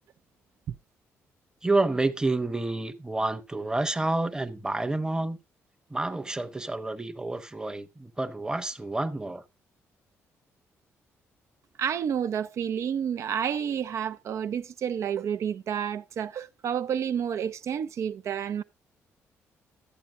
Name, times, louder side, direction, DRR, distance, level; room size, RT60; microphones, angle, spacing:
voice 1, 1.6-5.4 5.9-9.4, right 2 dB, 15° right, 0.9 m, -29 dB
voice 2, 11.8-18.6, right 8 dB, 65° right, 0.6 m, -30 dB
12.0 x 8.6 x 2.5 m
cardioid pair, 75°, 5 cm